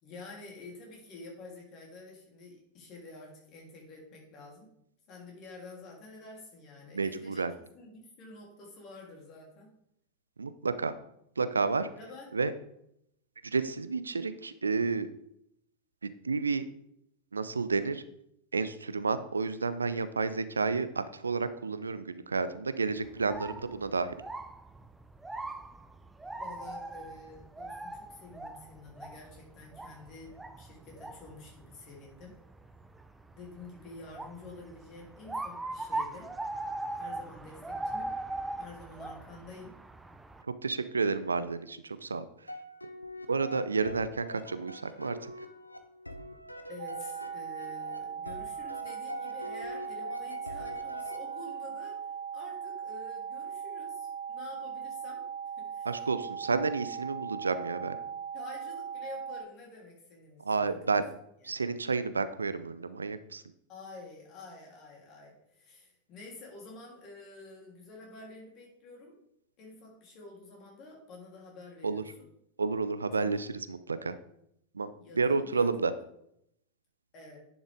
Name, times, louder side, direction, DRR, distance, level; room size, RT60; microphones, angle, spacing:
voice 1, 0.0-4.7 5.1-7.5 7.7-9.7 11.9-12.4 26.4-32.3 33.3-36.3 36.9-38.1 38.6-39.7 46.7-52.0 52.3-55.2 55.6-56.0 58.3-60.8 61.4-61.5 63.7-69.1 69.6-72.3 73.1-73.4 75.0-75.7 77.1-77.4, left 3 dB, 35° left, -2 dB, 3.3 m, -49 dB
voice 2, 6.9-7.5 10.4-10.9 11.4-11.9 12.3-12.5 13.4-15.1 16.0-16.6 17.3-18.0 18.5-24.1 40.6-42.2 43.3-45.3 55.9-58.0 60.4-61.0 61.4-63.4 71.8-72.0 72.6-74.2 74.7-74.9 75.2-75.9, right 4 dB, 75° right, 13 dB, 0.5 m, -30 dB
sound 1, 23.0-40.4, right 2 dB, 10° right, 0.5 m, -41 dB
sound 2, 42.5-51.8, equal, 85° left, 0.8 m, -44 dB
sound 3, 46.8-59.4, right 7 dB, 60° right, 1.0 m, -39 dB
10.0 x 6.4 x 3.6 m, 0.75 s
figure-of-eight pair, 90°, 0 cm